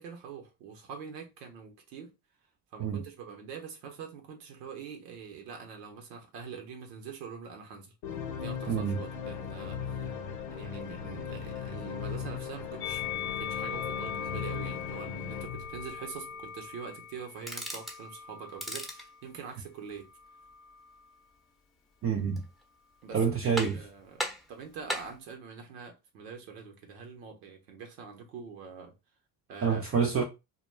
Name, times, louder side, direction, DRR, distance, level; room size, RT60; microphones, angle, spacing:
voice 1, 0.0-2.1 2.7-7.9 8.4-10.2 10.5-20.1 23.0-28.9 29.5-29.8, right 6 dB, 75° right, 0.8 m, -44 dB
sound 1, 8.0-16.5, left 7 dB, 75° left, 0.8 m, -38 dB
voice 2, 8.7-9.0 22.0-22.4 23.1-23.8 29.6-30.2, right 6 dB, 30° right, 0.5 m, -27 dB
Musical instrument, 12.8-19.2 20.0-21.0, left 8 dB, 25° left, 0.5 m, -41 dB
sound 2, 17.4-18.0 18.5-19.1 22.1-22.6 23.0-23.1 23.6-23.9 24.2-25.2, equal, ahead, 0.8 m, -37 dB
2.2 x 2.1 x 3.1 m
hypercardioid pair, 55°, 50 cm